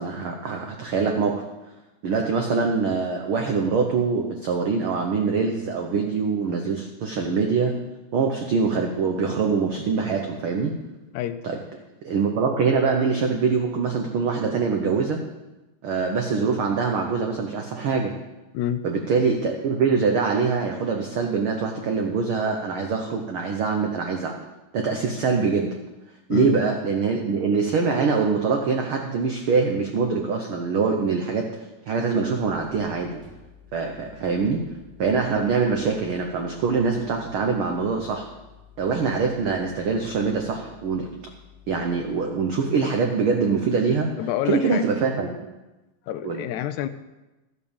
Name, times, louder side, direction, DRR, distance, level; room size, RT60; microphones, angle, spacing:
voice 1, 0.0-1.4 2.0-7.8 8.1-10.7 11.4-11.6 12.0-15.2 15.8-18.1 18.8-24.4 24.7-25.8 26.3-31.5 31.9-33.2 33.7-34.7 35.0-38.3 38.8-41.1 41.7-44.1 44.5-45.5 46.2-46.4, right 5 dB, 80° right, 3 dB, 1.2 m, -24 dB
voice 2, 18.5-18.9 26.3-26.5 44.2-44.8 46.1-46.9, left 11 dB, 80° left, 11 dB, 1.8 m, -27 dB
sound 1, 32.3-42.2, left 8 dB, 15° right, 2.9 m, -51 dB
13.5 x 6.6 x 7.1 m, 1.1 s
omnidirectional pair, 3.7 m